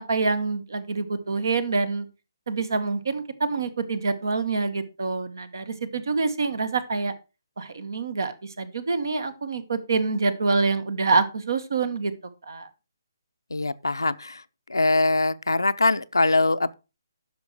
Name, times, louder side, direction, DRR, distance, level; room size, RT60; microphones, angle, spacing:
voice 1, 0.0-2.0 2.5-7.1 7.6-12.1 12.5-12.7, right 4 dB, 65° right, 1.5 m, -26 dB
voice 2, 13.5-14.4 14.7-16.7, left 2 dB, 80° left, 0.6 m, -22 dB
10.5 x 6.3 x 4.8 m
figure-of-eight pair, 140°, 2 cm